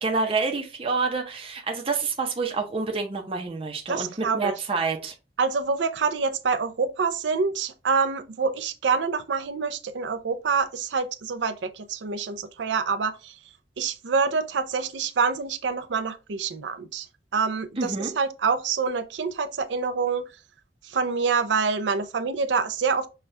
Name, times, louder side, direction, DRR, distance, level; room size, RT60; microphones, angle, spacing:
voice 1, 0.0-5.1 17.8-18.1, right 4 dB, 30° right, 0.7 m, -28 dB
voice 2, 3.9-4.5 5.4-13.3 13.8-17.1 17.3-20.3 20.8-23.1, right 5 dB, 80° right, 0.5 m, -26 dB
5.5 x 2.3 x 3.2 m
head